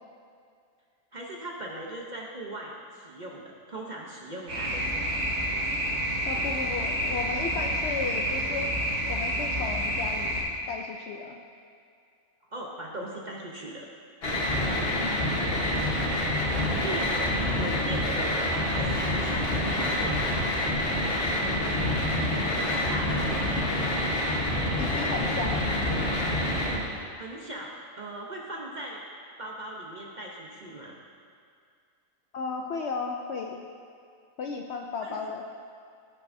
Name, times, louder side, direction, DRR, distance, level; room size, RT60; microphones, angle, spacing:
voice 1, 1.1-5.2 12.5-13.9 16.8-20.2 22.3-23.2 26.8-29.0 29.4-31.0 35.0-35.1, right 1 dB, 40° right, -2 dB, 0.7 m, -39 dB
sound 1, 4.5-10.4, equal, 60° right, 1.9 m, -29 dB
voice 2, 6.3-8.7 9.1-11.4 14.9-15.7 24.8-25.7 32.3-33.6 34.4-35.4, left 4 dB, 65° left, 2 dB, 0.7 m, -35 dB
sound 2, 14.2-26.8, left 1 dB, 45° left, 1.3 m, -27 dB
15.0 x 5.6 x 2.6 m, 2.3 s
omnidirectional pair, 1.5 m